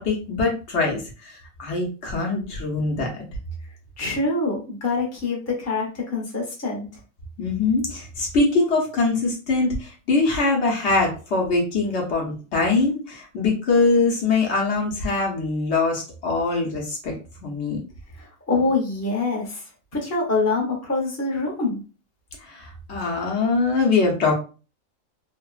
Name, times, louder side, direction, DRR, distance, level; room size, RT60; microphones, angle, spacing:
voice 1, 0.0-3.2 7.4-17.1 17.4-17.8 22.4-24.3, left 3 dB, 60° left, -1 dB, 1.0 m, -23 dB
voice 2, 4.0-6.9 18.1-19.6 19.9-21.8, left 3 dB, 15° left, -2 dB, 0.6 m, -25 dB
3.1 x 2.1 x 2.3 m, 0.34 s
omnidirectional pair, 1.4 m